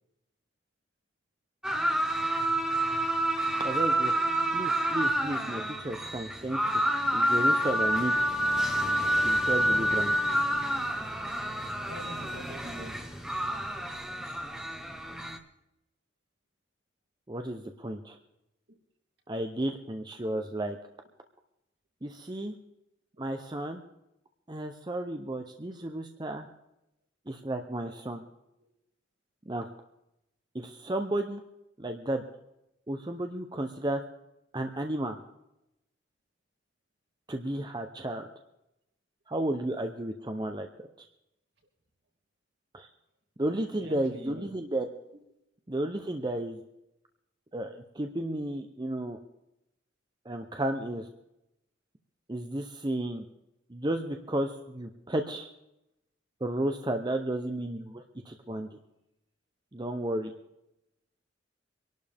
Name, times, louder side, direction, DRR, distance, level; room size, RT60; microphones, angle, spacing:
sound 1, 1.6-15.4, right 1 dB, 5° right, 1.1 m, -28 dB
voice 1, 3.6-4.1 4.5-6.8 7.1-8.1 9.2-10.2 17.3-18.2 19.3-20.8 22.0-22.5 23.2-23.8 24.5-26.5 27.3-28.2 29.5-29.7 30.5-31.4 31.8-32.2 32.9-34.0 34.5-35.2 37.3-38.3 39.3-40.7 42.7-42.9 43.4-44.9 45.7-46.6 47.5-49.2 50.2-51.1 52.3-53.2 53.7-55.5 56.4-58.8 59.7-60.3, right 1 dB, 25° right, 5 dB, 0.8 m, -33 dB
voice 2, 11.9-13.3 43.7-44.5, equal, 65° right, 0 dB, 3.0 m, -44 dB
24.0 x 12.0 x 3.6 m, 0.86 s
head